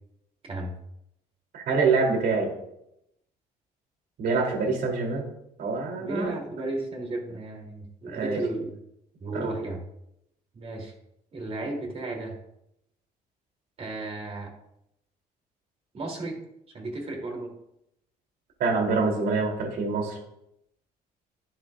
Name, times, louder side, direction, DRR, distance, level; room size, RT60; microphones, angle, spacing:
voice 1, 1.5-2.5 4.2-5.2 5.6-6.4 8.1-8.4 9.3-9.5 18.6-20.2, right 4 dB, 70° right, 1 dB, 3.3 m, -25 dB
voice 2, 6.0-8.7 9.2-9.8 10.5-10.9 11.3-12.4 13.8-14.5 15.9-16.4 16.7-17.5, right 2 dB, 35° right, 0 dB, 3.2 m, -34 dB
11.5 x 10.0 x 2.5 m, 0.80 s
cardioid pair, 110°, 17 cm